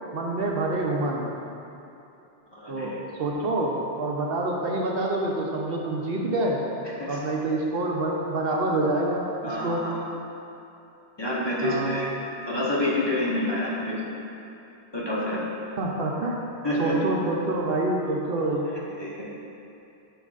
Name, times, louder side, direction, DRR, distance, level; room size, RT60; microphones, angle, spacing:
voice 1, 0.1-1.3 2.7-6.6 7.1-9.9 11.6-12.0 15.8-16.4 16.8-18.7, right 2 dB, 65° right, -1 dB, 0.8 m, -27 dB
voice 2, 2.5-2.9 7.0-7.2 9.4-9.9 11.2-12.1 12.5-13.9 14.9-15.4 16.6-16.9 18.9-19.2, left 1 dB, 25° left, -7 dB, 0.9 m, -28 dB
8.9 x 5.3 x 2.4 m, 2.8 s
omnidirectional pair, 1.1 m